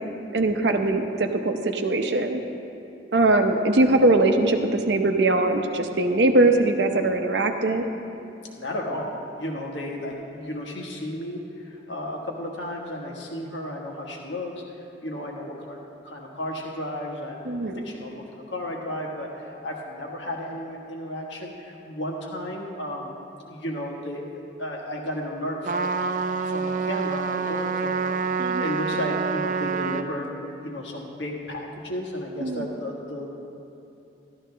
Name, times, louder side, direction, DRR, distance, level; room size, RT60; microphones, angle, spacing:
voice 1, 0.3-2.4 3.1-7.8 17.5-17.8 28.4-28.6 32.4-32.7, right 2 dB, 70° right, 5 dB, 0.7 m, -21 dB
voice 2, 8.5-14.5 15.0-30.3 30.6-33.3, left 1 dB, 80° left, 0 dB, 1.4 m, -33 dB
Trumpet, 25.6-30.1, right 5 dB, 45° right, 0.4 m, -27 dB
12.5 x 12.0 x 3.4 m, 2.8 s
head